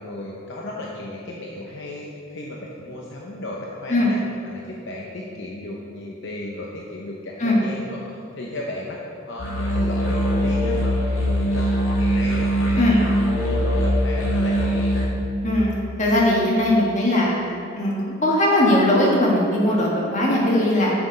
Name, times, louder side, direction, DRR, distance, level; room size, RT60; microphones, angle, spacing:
voice 1, 0.0-4.2 4.4-9.0 9.3-14.9, left 1 dB, 60° left, -2 dB, 0.8 m, -34 dB
sound 1, 9.4-15.1, equal, 80° left, 1.9 m, -21 dB
voice 2, 15.4-15.7 16.0-17.4 17.7-20.9, left 1 dB, 35° left, -4 dB, 1.6 m, -19 dB
7.9 x 6.2 x 5.0 m, 2.6 s
head